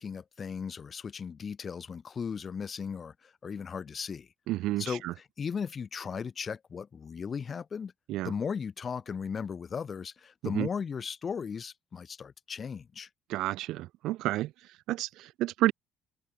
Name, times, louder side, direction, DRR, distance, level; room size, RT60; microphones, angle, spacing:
voice 1, 0.0-4.3 4.8-7.9 8.2-13.1, left 6 dB, 25° left, 3.9 m, -37 dB
voice 2, 4.5-5.1 8.1-8.3 10.5-10.7 13.3-14.5 14.9-15.7, right 16 dB, 65° right, 0.6 m, -30 dB
cardioid pair, 160°, 0 cm